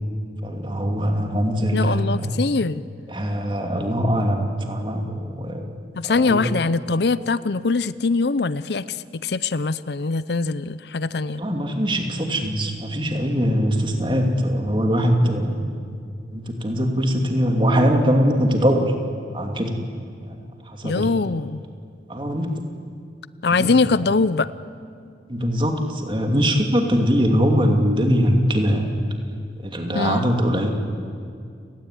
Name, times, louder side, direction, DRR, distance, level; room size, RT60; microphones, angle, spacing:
voice 1, 0.4-2.4 3.1-5.8 6.0-6.5 11.4-15.8 16.3-18.9 19.3-19.8 20.2-20.4 20.6-21.1 22.1-22.5 23.6-23.7 25.3-28.9 29.6-30.7, equal, 25° right, 3 dB, 2.6 m, -22 dB
voice 2, 1.7-2.8 5.9-11.4 20.8-21.6 23.4-24.5 29.9-30.3, left 4 dB, 60° left, 16 dB, 0.6 m, -22 dB
30.0 x 18.0 x 9.9 m, 2.3 s
head